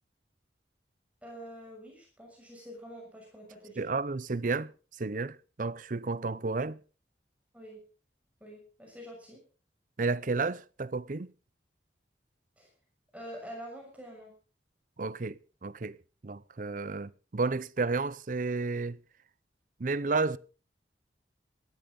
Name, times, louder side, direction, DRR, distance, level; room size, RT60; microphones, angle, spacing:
voice 1, 1.2-3.9 7.5-7.8 8.4-9.4 12.6-12.7 13.1-14.3, equal, 10° right, 6.6 m, -46 dB
voice 2, 3.8-6.8 10.0-11.3 15.0-16.0 16.2-19.0 19.8-20.4, right 3 dB, 50° right, 0.6 m, -32 dB
18.5 x 14.0 x 3.9 m
head